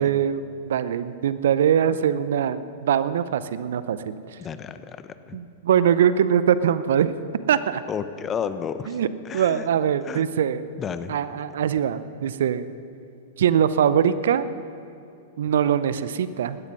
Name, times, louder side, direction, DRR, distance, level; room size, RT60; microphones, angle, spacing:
voice 1, 0.0-4.1 5.3-7.1 7.5-7.8 8.9-9.1 9.3-10.7 11.1-12.7 13.4-14.5 15.4-16.6, right 9 dB, 65° right, 15 dB, 0.6 m, -22 dB
voice 2, 4.4-5.4 7.9-9.0 9.2-9.6 10.0-10.2 10.8-11.2, left 7 dB, 25° left, 12 dB, 0.9 m, -32 dB
17.5 x 12.5 x 6.2 m, 2.7 s
hypercardioid pair, 105°, 0 cm